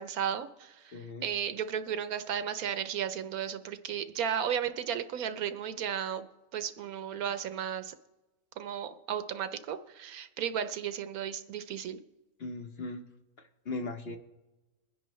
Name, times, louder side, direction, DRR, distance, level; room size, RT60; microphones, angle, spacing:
voice 1, 0.0-6.3 6.5-7.9 8.6-12.0, right 8 dB, 75° right, 11 dB, 1.2 m, -34 dB
voice 2, 0.9-1.2 12.4-13.0 13.7-14.2, left 2 dB, 50° left, 6 dB, 1.0 m, -38 dB
22.0 x 10.0 x 3.1 m, 1.1 s
omnidirectional pair, 1.6 m